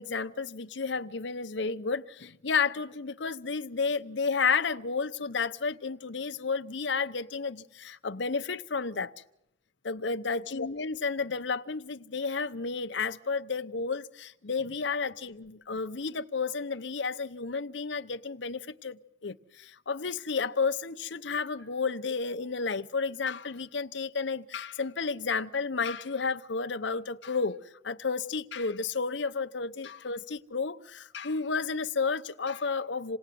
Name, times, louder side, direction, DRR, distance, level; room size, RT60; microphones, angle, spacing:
voice 1, 0.0-9.1 9.8-27.6 27.8-33.2, left 4 dB, 75° left, 0.9 m, -32 dB
28.0 x 18.5 x 9.3 m
head